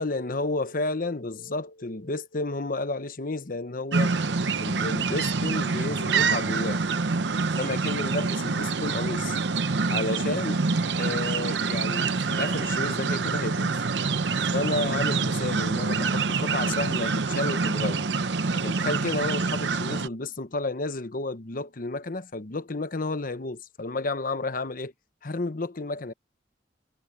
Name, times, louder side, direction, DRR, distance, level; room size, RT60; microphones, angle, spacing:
voice 1, 0.0-4.1 4.6-6.8 7.6-9.4 9.9-10.6 11.0-13.8 14.5-18.1 18.5-24.9 25.2-26.1, left 2 dB, 50° left, 1.0 m, -31 dB
sound 1, 3.9-20.1, right 4 dB, 75° right, 0.8 m, -26 dB
head